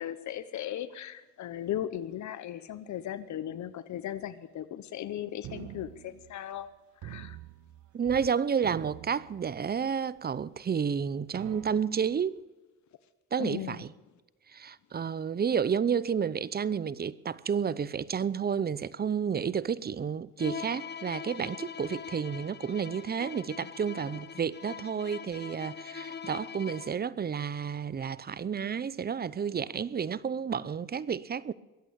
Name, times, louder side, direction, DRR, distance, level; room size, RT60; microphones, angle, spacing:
voice 1, 0.0-6.7 7.0-7.4 13.4-13.8, left 11 dB, 70° left, 0.9 m, -37 dB
sound 1, 5.4-6.7 7.0-8.3 8.6-9.9 10.5-10.6 11.3-12.2, right 14 dB, 70° right, 0.6 m, -46 dB
voice 2, 7.9-12.4 13.3-13.9 14.5-31.5, right 7 dB, 30° right, 0.7 m, -31 dB
Bowed string instrument, 20.4-27.1, left 6 dB, 35° left, 1.0 m, -42 dB
22.0 x 8.5 x 6.9 m
cardioid pair, 90°, 30 cm